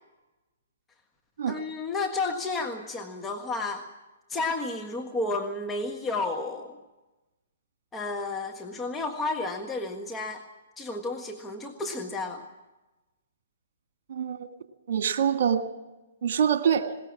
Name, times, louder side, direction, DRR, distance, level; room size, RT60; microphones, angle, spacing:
voice 1, 1.5-3.8 4.3-6.8 7.9-10.4 10.8-12.4, left 3 dB, 15° left, 3 dB, 1.5 m, -31 dB
voice 2, 14.1-14.5 14.9-15.6 16.2-16.9, right 8 dB, 60° right, 7 dB, 1.9 m, -25 dB
20.5 x 18.5 x 7.3 m, 1.1 s
hypercardioid pair, 125°, 0 cm